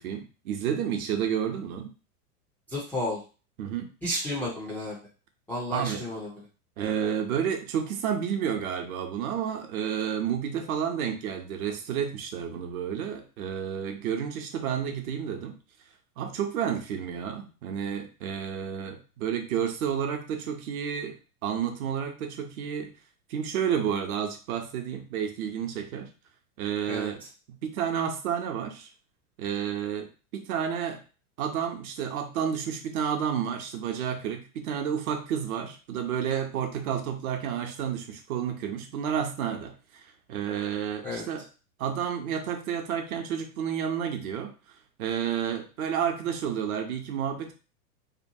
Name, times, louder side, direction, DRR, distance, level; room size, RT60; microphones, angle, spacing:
voice 1, 0.0-1.9 3.6-3.9 5.7-6.0 6.8-15.6 16.2-21.2 21.4-22.9 23.3-26.1 26.6-27.2 27.6-28.9 29.4-31.0 31.4-40.0 40.3-41.4 41.8-44.5 45.0-47.5, right 8 dB, 65° right, 5 dB, 0.8 m, -30 dB
voice 2, 2.7-3.2 4.0-5.0 5.5-6.3 26.9-27.1 41.0-41.2, left 1 dB, 5° left, -7 dB, 0.3 m, -32 dB
2.8 x 2.2 x 2.7 m, 0.34 s
hypercardioid pair, 105°, 46 cm